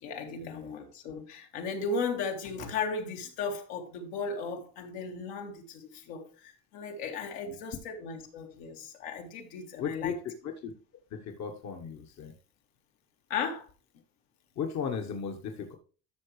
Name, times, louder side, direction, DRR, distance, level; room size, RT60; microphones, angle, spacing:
voice 1, 0.0-10.2 13.3-13.7, left 4 dB, 85° left, 2.4 m, -36 dB
voice 2, 9.8-10.1 10.4-10.7 11.1-12.3 14.6-15.8, left 6 dB, 55° left, 1.3 m, -36 dB
13.0 x 6.0 x 3.2 m
supercardioid pair, 110°, 32 cm